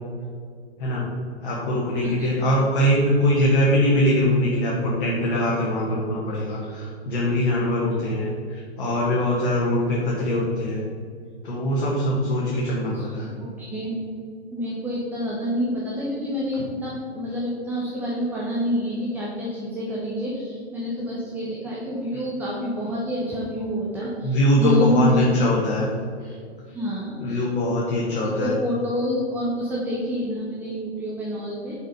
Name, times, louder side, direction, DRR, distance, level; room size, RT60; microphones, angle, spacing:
voice 1, 1.4-10.8 11.4-13.3 24.2-25.9 26.2-26.3 27.2-28.5, equal, 50° left, -5 dB, 1.6 m, -22 dB
voice 2, 2.0-2.5 12.9-14.0 14.5-25.5 26.7-27.4 28.4-31.7, left 1 dB, 5° right, -5 dB, 0.7 m, -27 dB
6.3 x 4.9 x 5.3 m, 2.2 s
figure-of-eight pair, 120°, 33 cm